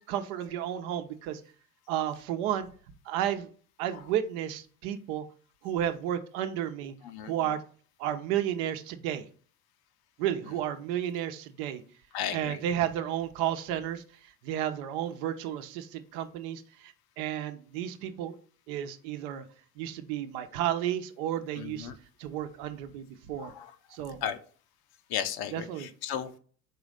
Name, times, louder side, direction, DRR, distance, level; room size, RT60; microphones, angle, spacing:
voice 1, 0.0-1.4 1.9-2.7 3.1-3.5 3.8-5.2 5.6-6.9 7.3-7.6 8.0-9.2 10.2-11.8 12.3-14.0 14.4-18.4 18.7-19.4 19.8-21.9 22.2-23.5 23.9-24.2 25.5-25.9, right 11 dB, 65° right, 8 dB, 0.9 m, -32 dB
voice 2, 12.1-12.6 21.6-21.9 23.4-23.7 24.2-24.4 25.1-26.4, left 9 dB, 50° left, 10 dB, 0.8 m, -34 dB
4.9 x 4.0 x 4.9 m, 0.43 s
hypercardioid pair, 65°, 48 cm